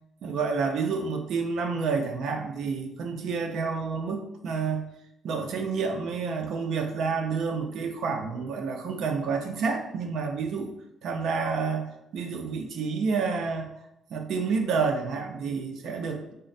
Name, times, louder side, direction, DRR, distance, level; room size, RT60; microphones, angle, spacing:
voice 1, 0.2-4.8 5.2-10.7 11.0-13.7 14.1-16.3, right 5 dB, 75° right, 4 dB, 0.5 m, -29 dB
3.7 x 2.1 x 3.9 m, 0.84 s
cardioid pair, 90°, 0 cm